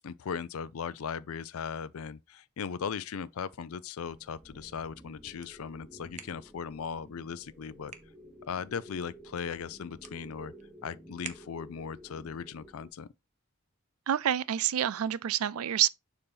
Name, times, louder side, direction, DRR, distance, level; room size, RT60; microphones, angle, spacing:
voice 1, 0.0-7.9 8.5-10.5 10.8-13.1, left 6 dB, 80° left, 0.4 m, -38 dB
sound 1, 3.2-11.9, right 7 dB, 35° right, 0.6 m, -53 dB
sound 2, 4.1-12.9, equal, ahead, 0.8 m, -53 dB
voice 2, 14.1-15.9, right 11 dB, 85° right, 0.4 m, -28 dB
6.8 x 2.9 x 5.4 m
head